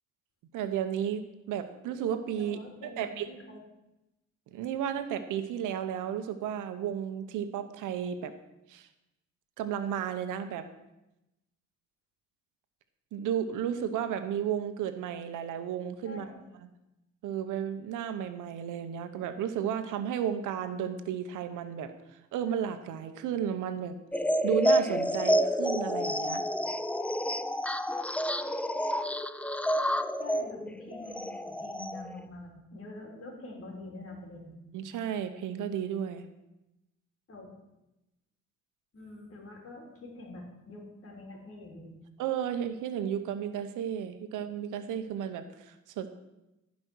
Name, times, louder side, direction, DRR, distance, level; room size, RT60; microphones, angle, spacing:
voice 1, 0.5-2.6 3.0-3.3 4.5-8.3 8.7-8.9 9.6-10.6 13.1-16.3 17.2-21.9 22.3-23.9 24.4-26.4 34.7-36.2 42.2-46.1, right 9 dB, 90° right, 9 dB, 1.0 m, -33 dB
voice 2, 2.4-3.6 16.0-16.4 30.2-34.5 37.3-37.5 38.9-41.9, left 2 dB, 50° left, 0 dB, 3.6 m, -45 dB
sound 1, 24.1-32.2, equal, 5° left, 0.5 m, -29 dB
15.5 x 5.3 x 6.2 m, 0.93 s
cardioid pair, 90°, 30 cm